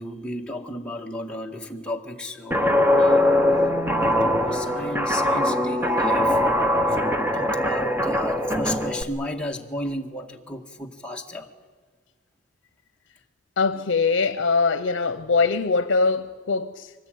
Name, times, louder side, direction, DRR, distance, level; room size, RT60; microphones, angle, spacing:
voice 1, 0.0-3.4 3.9-6.4 6.9-11.5, left 1 dB, 5° left, 1.8 m, -34 dB
Guitar, 2.5-9.0, left 1 dB, 10° right, 1.1 m, -21 dB
voice 2, 13.6-16.9, left 4 dB, 80° left, 0.7 m, -22 dB
24.5 x 19.5 x 9.3 m
head